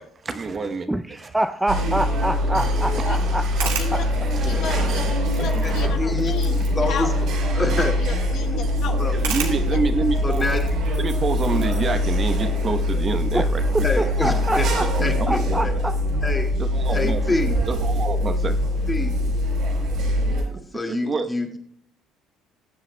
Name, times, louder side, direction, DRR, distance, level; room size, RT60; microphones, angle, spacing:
voice 1, 0.0-0.9 1.2-1.3 2.8-2.9 4.3-4.5 5.3-6.1 9.1-10.5 11.0-13.6 14.6-15.6 16.6-17.4 17.7-18.6 20.9-21.3, right 4 dB, 35° right, 8 dB, 1.0 m, -28 dB
voice 2, 0.9-4.0 13.3-13.5 13.7-14.9 15.3-15.9, right 1 dB, 10° right, 9 dB, 0.5 m, -26 dB
sound 1, 1.7-20.4, left 1 dB, 65° right, 5.0 m, -23 dB
sound 2, 3.1-14.0, right 7 dB, 90° right, 2.0 m, -38 dB
voice 3, 4.4-5.0 5.3-7.2 7.6-9.0 9.7-9.8, left 6 dB, 65° left, 4 dB, 1.1 m, -33 dB
voice 4, 5.4-6.3 6.8-7.1 7.5-7.9 9.0-9.1 10.2-10.6 13.8-14.7 15.0-15.7 16.2-16.5 16.9-17.5 18.9-19.1 20.7-21.6, left 2 dB, 20° left, 3 dB, 2.2 m, -26 dB
20.0 x 7.5 x 2.3 m, 0.67 s
supercardioid pair, 75°, 0 cm